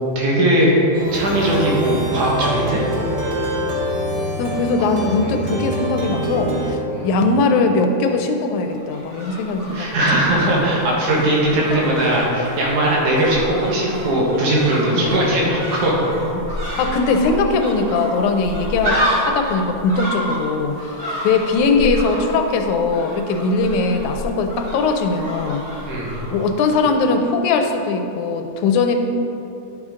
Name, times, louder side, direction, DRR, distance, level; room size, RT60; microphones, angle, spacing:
voice 1, 0.2-0.8 1.1-2.8 4.8-4.9 5.2-5.4 6.9-7.1 9.7-16.0 16.7-16.8 25.9-26.1, right 1 dB, 85° right, -4 dB, 2.9 m, -19 dB
Plucked string instrument, 0.9-6.7, equal, 55° right, 2.1 m, -25 dB
voice 2, 4.4-9.9 11.7-11.8 14.9-15.2 16.4-25.6 26.3-29.0, left 3 dB, 85° left, 5 dB, 2.0 m, -20 dB
sound 1, 8.7-26.9 27.1-27.2, equal, 35° right, 1.8 m, -29 dB
10.5 x 6.4 x 3.7 m, 2.9 s
omnidirectional pair, 3.4 m